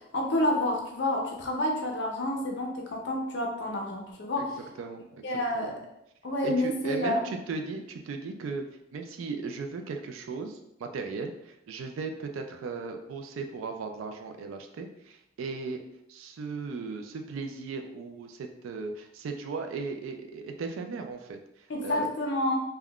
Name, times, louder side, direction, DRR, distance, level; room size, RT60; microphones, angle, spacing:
voice 1, 0.1-4.5 5.2-5.8 6.2-7.2 21.7-22.6, left 1 dB, 60° left, 1 dB, 0.5 m, -29 dB
voice 2, 6.4-8.6 8.9-15.8 16.1-22.0, right 4 dB, 80° right, 5 dB, 0.3 m, -37 dB
3.5 x 2.2 x 2.3 m, 0.82 s
head